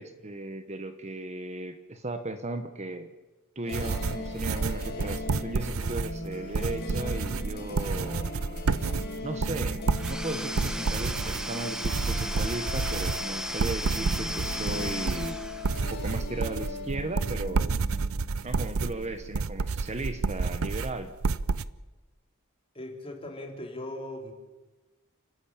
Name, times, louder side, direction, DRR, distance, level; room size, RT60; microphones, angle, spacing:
voice 1, 0.0-3.1 3.5-8.3 9.2-15.4 15.9-17.8 18.4-21.1, right 2 dB, 30° right, 9 dB, 1.1 m, -36 dB
sound 1, 3.6-20.3, left 2 dB, 50° left, 3.5 m, -39 dB
sound 2, 3.7-21.7, right 4 dB, 75° right, 0.6 m, -30 dB
Domestic sounds home sounds / Tools, 9.9-16.1, equal, 5° right, 1.1 m, -36 dB
voice 2, 22.7-24.3, left 1 dB, 25° left, 2 dB, 3.6 m, -39 dB
30.0 x 12.5 x 8.7 m, 1.2 s
head